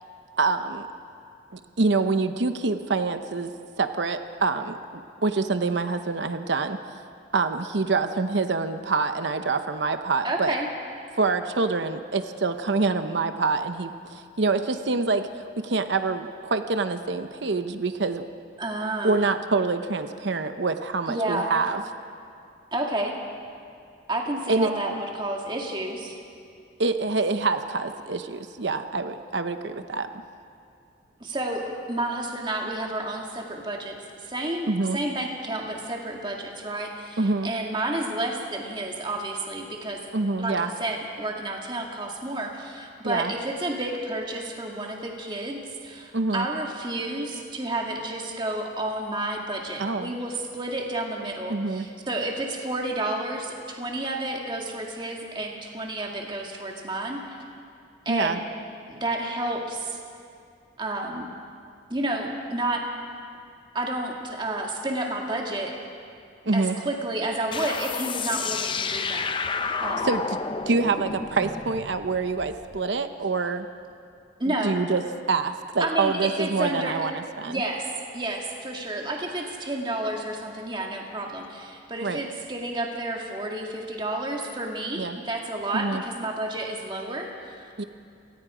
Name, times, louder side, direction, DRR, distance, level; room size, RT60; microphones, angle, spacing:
voice 1, 0.4-0.9 1.5-3.5 3.8-7.1 7.3-10.5 11.2-15.3 15.6-18.2 19.0-21.8 24.5-25.0 26.8-30.1 34.7-35.0 37.2-37.5 40.1-40.7 43.0-43.3 46.1-46.5 49.8-50.1 51.5-51.9 58.1-58.4 66.4-66.7 70.0-70.4 70.7-73.7 74.5-75.0 75.3-77.6 82.0-82.2 85.0-85.2 85.7-86.0 87.8-87.9, right 3 dB, 70° right, 9 dB, 0.8 m, -26 dB
voice 2, 10.2-10.7 18.6-19.2 21.1-21.5 22.7-23.2 24.1-26.2 31.2-34.0 34.2-40.0 40.4-57.4 58.1-58.4 58.9-60.0 60.8-61.3 61.9-62.8 63.7-65.7 66.5-69.3 69.8-70.1 74.4-74.8 75.8-77.0 77.5-77.9 78.1-87.9, right 1 dB, 25° right, 0 dB, 2.1 m, -30 dB
sound 1, 67.5-72.8, left 5 dB, 25° left, 0.5 m, -31 dB
28.0 x 19.0 x 5.0 m, 2.4 s
head